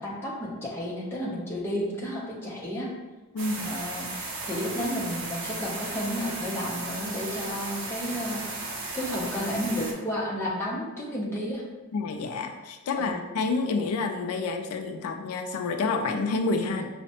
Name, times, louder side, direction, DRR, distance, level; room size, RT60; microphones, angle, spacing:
voice 1, 0.0-2.9 3.6-8.7 8.9-11.6 12.9-13.3 13.8-13.9 16.6-16.9, equal, 10° left, -5 dB, 0.6 m, -32 dB
sound 1, 3.4-9.9, right 3 dB, 55° right, 0.6 m, -35 dB
voice 2, 11.9-16.8, left 3 dB, 85° left, 5 dB, 0.4 m, -28 dB
5.5 x 2.1 x 2.8 m, 1.2 s
head